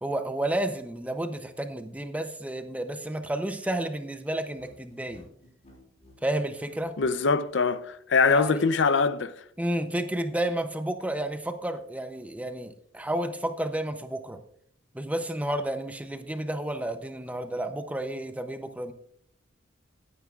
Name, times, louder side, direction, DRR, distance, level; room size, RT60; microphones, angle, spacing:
voice 1, 0.0-5.3 6.2-7.0 8.4-8.7 9.6-14.4 14.9-18.9, right 1 dB, 5° right, 0.6 m, -31 dB
sound 1, 4.4-7.2, left 1 dB, 35° left, 3.6 m, -54 dB
voice 2, 7.0-9.3, left 4 dB, 65° left, 0.5 m, -23 dB
17.0 x 9.3 x 2.4 m
head